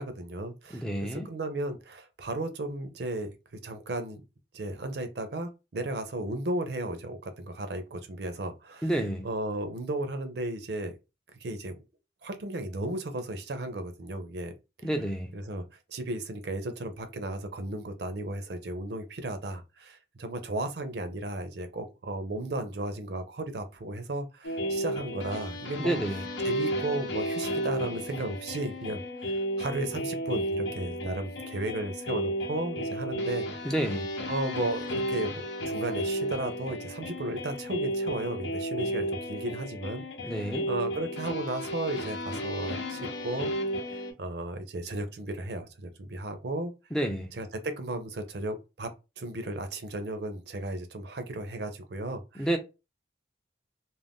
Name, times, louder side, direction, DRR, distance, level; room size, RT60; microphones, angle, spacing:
voice 1, 0.0-3.3 3.6-4.2 4.5-8.9 9.2-10.9 11.4-11.8 12.2-14.5 15.3-26.0 26.4-33.7 34.3-43.5 43.9-46.7 47.3-48.9 49.2-52.5, right 2 dB, 60° right, 0.5 m, -35 dB
voice 2, 0.7-1.3 8.8-9.3 14.8-15.3 25.8-26.2 33.6-34.1 40.2-40.7 46.9-47.3 52.4-52.6, right 1 dB, 5° left, 0.3 m, -29 dB
sound 1, 24.4-44.1, equal, 75° left, 0.7 m, -33 dB
2.5 x 2.2 x 3.4 m
head